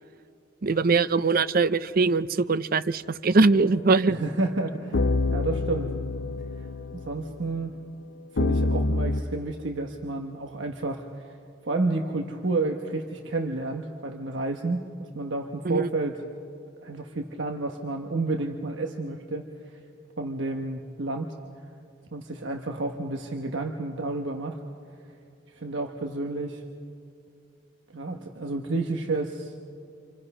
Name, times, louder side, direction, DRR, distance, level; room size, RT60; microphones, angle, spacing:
voice 1, 0.6-4.2 15.6-15.9, right 3 dB, 50° right, 14 dB, 0.6 m, -22 dB
sound 1, 3.6-3.7 4.2-4.3 4.9-7.7 8.4-9.2, left 2 dB, 80° left, 0.7 m, -27 dB
voice 2, 4.1-5.9 6.9-7.7 8.3-11.0 11.6-16.2 16.8-19.5 20.2-21.3 22.1-24.6 25.5-26.6 27.9-29.5, right 2 dB, 80° right, 3 dB, 1.1 m, -30 dB
29.0 x 26.5 x 5.5 m, 2.5 s
head